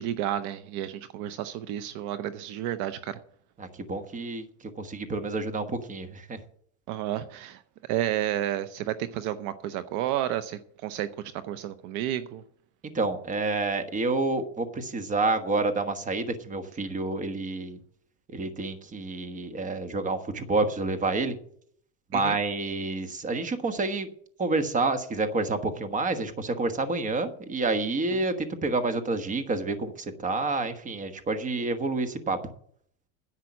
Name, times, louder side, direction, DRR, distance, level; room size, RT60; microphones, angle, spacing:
voice 1, 0.0-3.2 6.9-12.4 22.1-22.4, right 12 dB, 60° right, 12 dB, 0.8 m, -31 dB
voice 2, 3.6-4.5 4.8-6.4 12.9-17.8 18.3-21.4 22.1-24.1 24.4-32.4, right 3 dB, 20° right, 9 dB, 1.3 m, -28 dB
10.5 x 7.5 x 8.4 m, 0.64 s
supercardioid pair, 140°, 35 cm